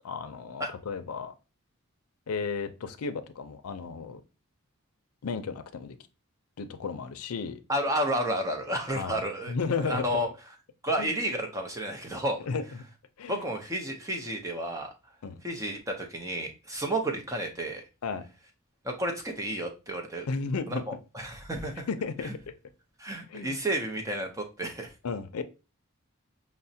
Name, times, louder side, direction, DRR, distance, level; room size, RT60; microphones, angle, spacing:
voice 1, 0.0-1.3 2.3-4.2 5.2-6.0 6.6-7.6 8.9-9.2 9.5-10.1 11.0-11.2 12.4-12.6 13.2-13.5 15.2-15.4 18.0-18.2 20.3-20.8 21.9-22.5 23.3-23.6 25.0-25.4, left 4 dB, 85° left, 0.5 m, -33 dB
voice 2, 7.7-9.5 9.8-10.3 10.8-12.5 13.3-14.9 15.4-17.8 18.8-20.3 20.7-21.9 22.2-22.3 23.0-24.9, right 1 dB, 15° right, 0.5 m, -31 dB
5.8 x 2.1 x 2.7 m
head